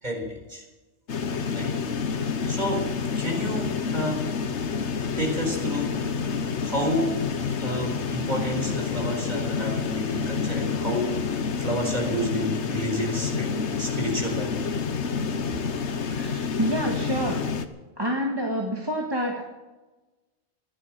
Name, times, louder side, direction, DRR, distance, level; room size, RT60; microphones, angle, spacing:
voice 1, 0.0-0.6 1.5-1.7 2.2-2.8 3.2-4.3 5.1-6.2 6.6-7.2 7.6-11.3 11.6-14.5, equal, 40° right, 1 dB, 4.3 m, -30 dB
sound 1, 1.1-17.7, left 5 dB, 80° left, 1.4 m, -28 dB
voice 2, 16.1-17.4 18.0-19.4, equal, 20° right, -1 dB, 1.8 m, -27 dB
15.0 x 11.5 x 7.4 m, 1.1 s
omnidirectional pair, 1.2 m